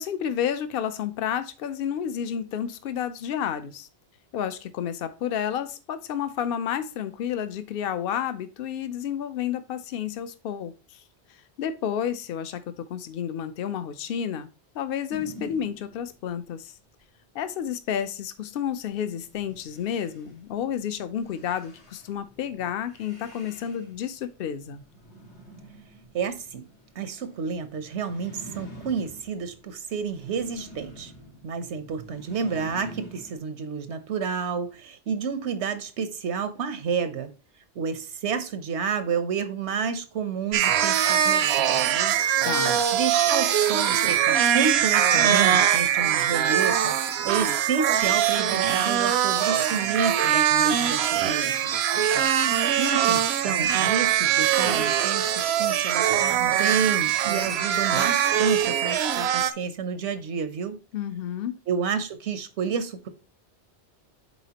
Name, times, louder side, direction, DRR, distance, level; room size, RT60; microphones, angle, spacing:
voice 1, 0.0-3.9 4.3-11.0 11.6-14.5 14.7-16.7 17.3-24.8 42.5-42.8 60.9-61.6, left 9 dB, 60° left, 0.8 m, -30 dB
sound 1, 15.1-16.4 19.0-33.4, equal, 80° left, 2.3 m, -47 dB
voice 2, 26.1-26.7 27.0-31.1 31.4-37.3 37.8-42.2 42.9-46.9 47.2-51.8 52.8-60.8 61.7-63.1, right 6 dB, 90° right, 1.1 m, -30 dB
sound 2, 40.5-59.5, right 9 dB, 75° right, 0.8 m, -22 dB
9.9 x 4.1 x 2.9 m
omnidirectional pair, 1.1 m